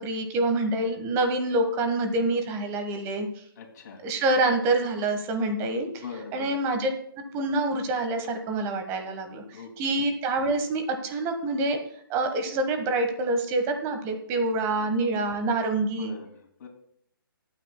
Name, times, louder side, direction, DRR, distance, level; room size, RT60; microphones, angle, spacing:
voice 1, 0.0-3.3 4.0-6.0 6.3-6.9 7.3-11.8 12.1-16.1, right 2 dB, 20° right, 6 dB, 1.3 m, -26 dB
voice 2, 3.6-4.0 5.7-6.6 9.5-10.0 14.8-14.9 15.7-16.7, left 5 dB, 50° left, 2 dB, 2.6 m, -43 dB
21.0 x 9.0 x 2.2 m, 0.67 s
hypercardioid pair, 150°, 12 cm